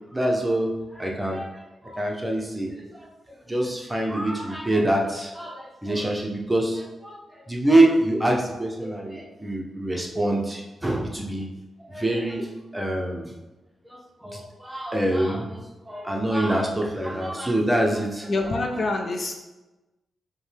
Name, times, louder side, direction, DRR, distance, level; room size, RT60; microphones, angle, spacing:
voice 1, 0.1-0.7 1.0-1.5 1.9-2.7 3.5-7.2 7.5-11.4 11.9-13.3 14.2-15.6 15.9-18.3, right 1 dB, 10° right, 0 dB, 0.8 m, -25 dB
voice 2, 18.3-19.4, left 2 dB, 55° left, 2 dB, 0.6 m, -26 dB
5.1 x 2.2 x 3.4 m, 1.1 s
cardioid pair, 70°, 0 cm